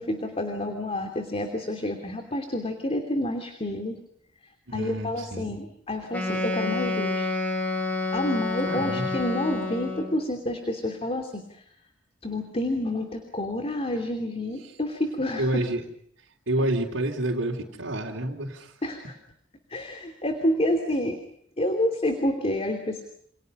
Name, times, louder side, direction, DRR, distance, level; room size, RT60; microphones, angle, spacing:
voice 1, 0.0-4.0 4.7-7.3 7.6-7.7 8.1-11.6 12.2-15.6 18.8-19.0 19.7-21.2 21.6-23.0, left 1 dB, 30° left, 5 dB, 2.9 m, -29 dB
voice 2, 4.7-5.5 8.6-9.1 15.4-15.8 16.5-18.7, right 1 dB, 90° right, -2 dB, 3.6 m, -28 dB
Wind instrument woodwind instrument, 6.1-10.2, left 2 dB, 10° left, 6.9 m, -28 dB
29.0 x 28.0 x 5.4 m, 0.69 s
head